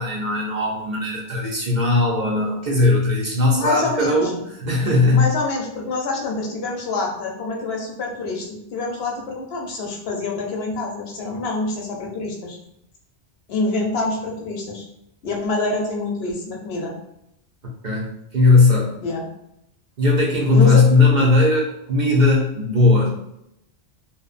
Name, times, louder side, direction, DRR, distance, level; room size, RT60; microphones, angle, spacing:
voice 1, 0.0-5.3 17.8-19.0 20.0-23.1, left 3 dB, 55° right, -3 dB, 0.5 m, -18 dB
voice 2, 3.5-4.3 5.1-12.6 13.5-14.9 15.2-16.9 19.0-19.3 20.5-20.9, left 3 dB, 75° left, 0 dB, 0.8 m, -26 dB
2.6 x 2.0 x 2.4 m, 0.80 s
omnidirectional pair, 1.1 m